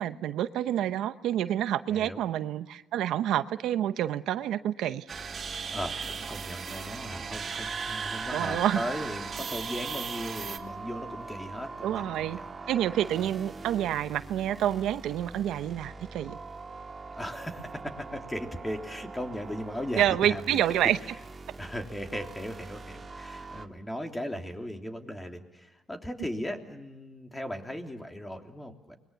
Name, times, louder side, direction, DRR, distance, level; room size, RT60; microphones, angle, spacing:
voice 1, 0.0-5.0 8.3-8.8 11.8-12.4 12.7-16.4 19.9-21.0, right 11 dB, 85° right, 12 dB, 0.8 m, -28 dB
voice 2, 1.9-2.2 5.7-12.5 17.1-20.6 21.6-29.0, equal, 10° left, 4 dB, 3.2 m, -37 dB
sound 1, 5.1-23.7, right 3 dB, 30° right, 1.9 m, -43 dB
sound 2, 5.1-10.6, right 6 dB, 45° right, 2.5 m, -37 dB
29.0 x 22.0 x 7.0 m, 1.0 s
cardioid pair, 90°, 0 cm